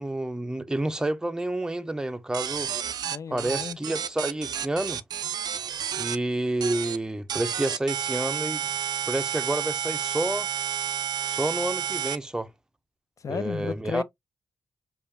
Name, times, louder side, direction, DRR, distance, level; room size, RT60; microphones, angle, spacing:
voice 1, 0.0-2.7 3.3-5.0 6.0-8.7 9.1-10.5 11.3-12.5 13.3-14.0, right 1 dB, 10° right, 0.5 m, -29 dB
sound 1, 2.3-6.2 6.6-7.0 7.3-12.2, right 9 dB, 75° right, 0.4 m, -30 dB
voice 2, 3.1-3.8 13.2-14.0, left 6 dB, 50° left, 0.5 m, -33 dB
5.0 x 2.3 x 2.6 m
cardioid pair, 65°, 7 cm